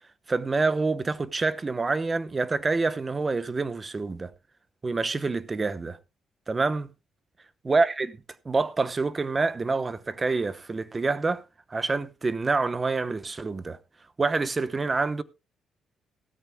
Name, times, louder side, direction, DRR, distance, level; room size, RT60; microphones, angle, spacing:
voice 1, 0.3-4.3 4.8-6.0 6.5-6.9 7.6-8.2 8.4-11.4 11.7-13.8 14.2-15.2, right 3 dB, 25° right, 0.9 m, -27 dB
16.5 x 13.0 x 2.2 m
cardioid pair, 90°, 0 cm